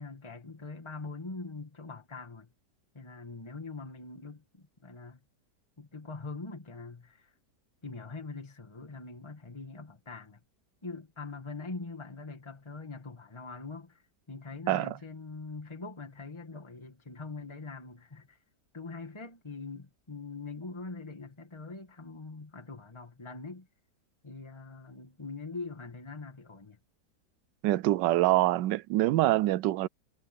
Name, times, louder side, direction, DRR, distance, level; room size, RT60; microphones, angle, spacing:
voice 1, 0.0-2.5 2.9-5.2 5.8-7.3 7.8-10.4 10.8-18.4 18.7-23.7 24.2-26.8, left 3 dB, 15° left, 1.9 m, -43 dB
voice 2, 27.6-29.9, right 16 dB, 85° right, 1.2 m, -25 dB
omnidirectional pair, 1.9 m